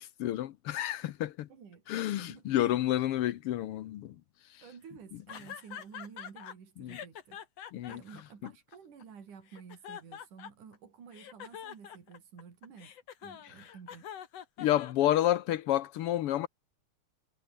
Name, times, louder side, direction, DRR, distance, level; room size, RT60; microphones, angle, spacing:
voice 1, 0.0-1.5 1.9-4.1 6.8-7.0 7.7-8.0 14.6-16.5, left 13 dB, 75° left, 1.3 m, -30 dB
voice 2, 1.5-2.6 3.1-3.2 4.6-7.4 7.9-12.9 13.2-14.1, right 6 dB, 70° right, 5.0 m, -51 dB
sound 1, 5.3-6.5 6.9-9.0 9.5-10.8 11.1-15.4, left 9 dB, 55° left, 2.6 m, -45 dB
omnidirectional pair, 3.7 m